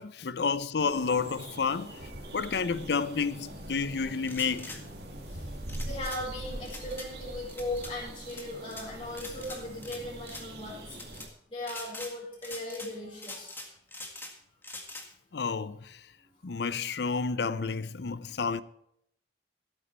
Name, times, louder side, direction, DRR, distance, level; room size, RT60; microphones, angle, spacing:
voice 1, 0.0-2.0 2.3-4.8 15.3-16.0 16.4-18.6, left 5 dB, 65° left, 0.6 m, -30 dB
sound 1, 0.8-11.3, right 1 dB, 65° right, 2.2 m, -43 dB
sound 2, 4.2-4.8 5.7-6.2 6.6-7.1 7.5-7.9 8.3-8.9 9.2-10.0 10.2-10.5 10.9-11.3 11.6-12.1 12.4-12.9 13.2-14.3 14.6-15.1, left 2 dB, 10° left, 1.9 m, -43 dB
voice 2, 5.8-10.8 11.5-13.5 16.5-16.6 16.9-17.0, left 1 dB, 30° left, 4.4 m, -38 dB
16.0 x 8.6 x 4.5 m
head